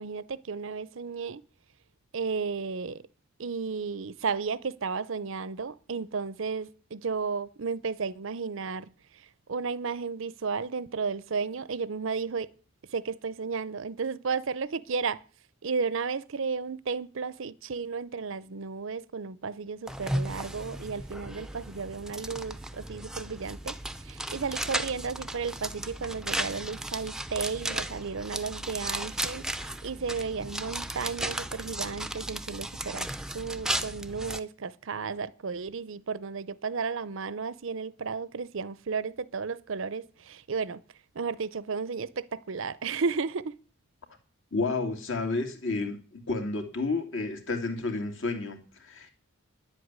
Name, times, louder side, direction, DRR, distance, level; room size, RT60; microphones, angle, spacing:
voice 1, 0.0-1.4 2.1-3.0 3.4-8.9 9.5-12.5 12.9-15.2 15.6-23.7 24.0-33.1 33.3-40.8 41.1-43.5, right 5 dB, 60° right, 0.6 m, -33 dB
sound 1, 19.9-34.4, right 1 dB, 5° right, 0.6 m, -35 dB
voice 2, 44.5-49.1, left 3 dB, 60° left, 2.5 m, -31 dB
10.5 x 8.0 x 9.6 m
head